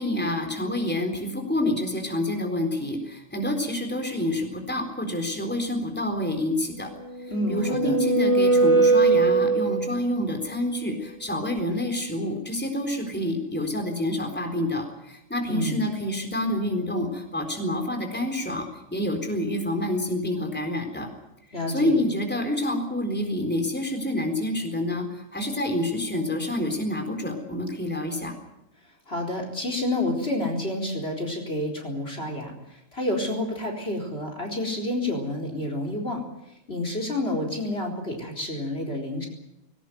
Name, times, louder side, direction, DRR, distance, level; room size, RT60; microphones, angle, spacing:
voice 1, 0.0-6.9 7.2-21.1 21.7-28.3, left 1 dB, 10° left, 4 dB, 4.0 m, -28 dB
sound 1, 7.1-10.1, right 3 dB, 25° right, 1.7 m, -21 dB
voice 2, 7.3-8.0 15.5-15.8 21.5-22.0 29.1-36.2 36.7-39.3, left 1 dB, 50° left, 1 dB, 4.4 m, -29 dB
20.5 x 18.5 x 9.3 m, 0.85 s
omnidirectional pair, 1.3 m